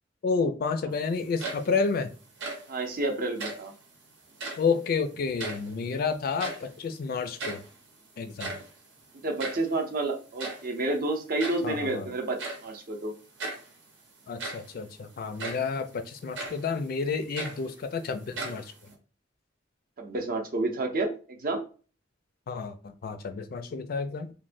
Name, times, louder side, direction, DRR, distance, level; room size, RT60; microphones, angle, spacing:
voice 1, 0.2-2.1 4.6-7.6 8.2-8.6 11.6-12.1 14.3-18.7 22.5-24.3, left 5 dB, 55° left, 0.3 m, -30 dB
sound 1, 1.2-1.9 2.2-2.8 3.3-3.7 4.3-4.8 5.1-6.0 6.2-6.8 7.1-7.2 7.4-7.7 8.2-9.7 10.4-10.7 11.4-11.8 12.4-12.7 13.4-13.7 14.2-14.8 15.4-15.7 16.3-16.7 17.1-18.0 18.3-18.9, right 3 dB, 80° right, 0.9 m, -37 dB
voice 2, 2.7-3.7 9.2-13.1 20.0-21.6, right 2 dB, 50° right, 0.6 m, -30 dB
3.1 x 2.1 x 2.5 m
head